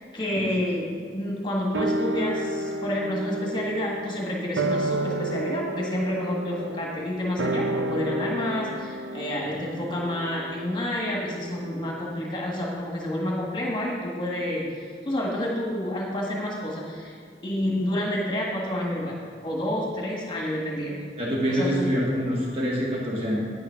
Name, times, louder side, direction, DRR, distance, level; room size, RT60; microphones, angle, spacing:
voice 1, 0.1-0.8 1.1-14.7 15.0-17.1 17.4-21.0 21.5-21.9, left 1 dB, 25° left, -3 dB, 1.6 m, -29 dB
sound 1, 1.7-12.4 12.6-12.7, right 1 dB, 90° right, 0.6 m, -31 dB
voice 2, 21.2-23.4, equal, 35° right, -4 dB, 1.5 m, -26 dB
9.5 x 7.0 x 5.7 m, 2.1 s
head